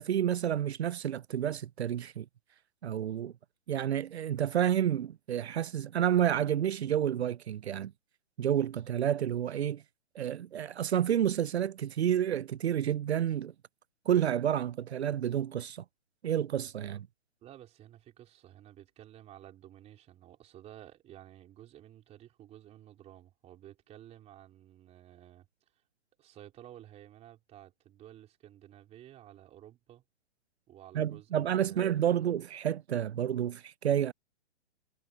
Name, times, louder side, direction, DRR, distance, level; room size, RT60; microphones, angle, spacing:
voice 1, 0.0-2.3 2.8-3.3 3.7-7.9 8.4-9.8 10.1-13.5 14.1-15.8 16.2-17.1 30.9-34.1, right 10 dB, 70° right, 0.6 m, -30 dB
voice 2, 17.4-25.5 26.2-30.0 30.7-32.0, right 12 dB, 20° right, 4.3 m, -53 dB
hypercardioid pair, 135°, 34 cm